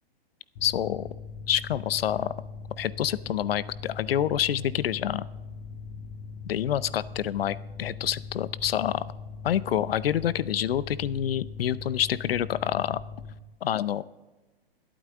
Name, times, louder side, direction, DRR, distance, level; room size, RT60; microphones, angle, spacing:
voice 1, 0.6-1.1 1.5-2.3 2.8-5.2 6.4-9.0 9.4-13.0 13.6-14.0, left 10 dB, 70° left, 18 dB, 0.6 m, -27 dB
Mechanical fan, 0.6-13.3, left 5 dB, 45° left, 1.8 m, -41 dB
21.0 x 8.8 x 3.7 m, 1.1 s
hypercardioid pair, 125°, 30 cm